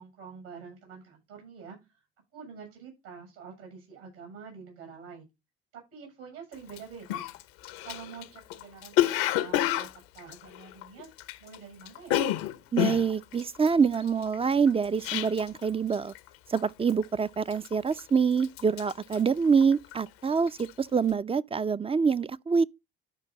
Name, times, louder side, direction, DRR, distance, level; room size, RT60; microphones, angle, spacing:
voice 1, 0.0-1.8 2.3-5.3 5.7-7.3 7.8-12.2, right 6 dB, 75° right, 7.6 m, -47 dB
Cough, 6.7-6.8 7.1-11.6 11.8-15.6 15.9-16.3 16.6-17.0 17.5-18.1 18.4-20.1 20.4-20.7, left 13 dB, 75° left, 0.9 m, -29 dB
voice 2, 12.7-16.1 16.5-22.6, right 5 dB, 20° right, 0.5 m, -26 dB
13.0 x 5.2 x 4.0 m
hypercardioid pair, 55°, 30 cm